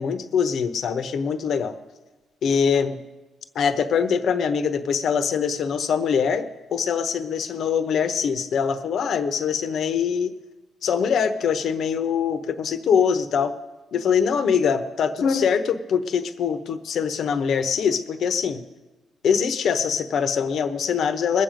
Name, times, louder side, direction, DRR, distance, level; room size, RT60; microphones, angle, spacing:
voice 1, 0.0-1.8 2.4-3.0 3.5-10.3 10.8-13.6 13.9-18.6 19.2-21.4, left 6 dB, 65° left, 9 dB, 1.0 m, -23 dB
21.0 x 7.6 x 5.2 m, 1.2 s
cardioid pair, 90°, 0 cm